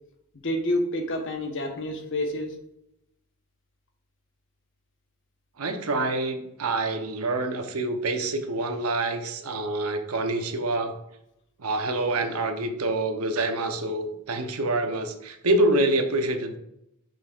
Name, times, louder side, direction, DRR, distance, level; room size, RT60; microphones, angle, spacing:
voice 1, 0.3-2.5, left 1 dB, 60° left, 4 dB, 1.0 m, -28 dB
voice 2, 5.6-11.0 11.6-16.6, right 2 dB, 75° right, 6 dB, 0.8 m, -26 dB
6.6 x 6.3 x 2.4 m, 0.81 s
head